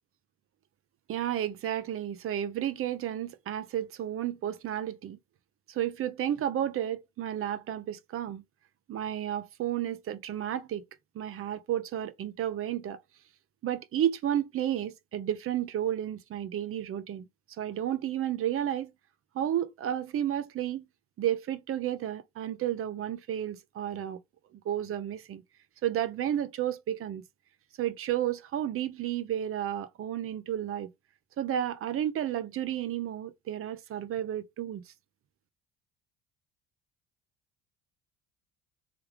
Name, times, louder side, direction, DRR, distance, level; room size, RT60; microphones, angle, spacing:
voice 1, 1.1-5.2 5.7-8.4 8.9-10.8 11.1-13.0 13.6-17.3 17.6-18.9 19.3-20.9 21.2-24.2 24.6-25.4 25.8-27.2 27.8-30.9 31.4-34.8, right 11 dB, 45° right, 0.7 m, -32 dB
3.4 x 3.4 x 3.2 m
hypercardioid pair, 65°, 31 cm